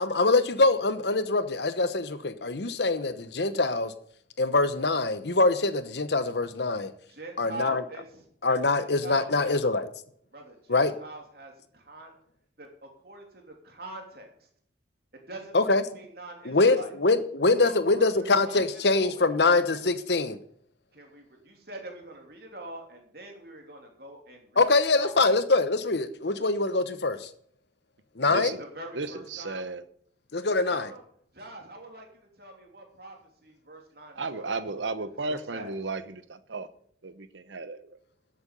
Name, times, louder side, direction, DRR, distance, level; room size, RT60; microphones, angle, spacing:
voice 1, 0.0-3.9 4.4-6.9 7.4-7.8 8.4-9.9 10.7-10.9 15.5-15.8 16.5-20.4 24.6-27.3 28.2-28.5 30.3-30.9, left 3 dB, 65° left, 1.0 m, -24 dB
voice 2, 7.1-8.2 8.7-9.6 10.3-12.1 12.6-14.5 15.1-16.9 17.6-19.3 20.9-24.6 24.9-25.1 28.6-29.6 30.6-31.0 31.3-32.1 32.4-33.2 33.4-34.8 35.3-35.7, right 1 dB, 55° right, 3.1 m, -44 dB
voice 3, 28.2-28.6 28.9-29.8 34.2-36.7 37.0-38.0, right 3 dB, 85° right, 1.0 m, -34 dB
13.5 x 7.9 x 5.4 m
head